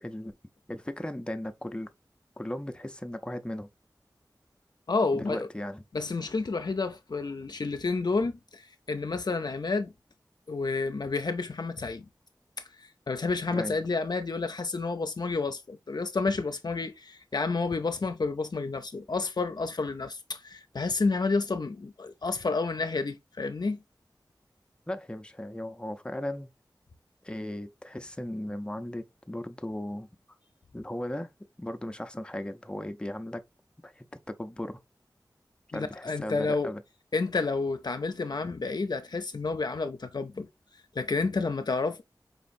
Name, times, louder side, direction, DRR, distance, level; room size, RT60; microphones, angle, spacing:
voice 1, 0.0-0.3 0.7-1.9 2.4-3.7 5.1-5.8 13.5-13.8 24.9-26.5 27.2-30.1 30.7-31.3 31.6-33.4 33.8-34.8 35.7-36.8, left 1 dB, 10° left, 0.6 m, -36 dB
voice 2, 4.9-5.5 5.9-9.9 10.5-12.0 12.8-23.8 35.7-36.7 37.1-40.5 40.9-42.0, left 3 dB, 65° left, 0.6 m, -30 dB
5.1 x 3.0 x 2.5 m
wide cardioid pair, 50°, 8 cm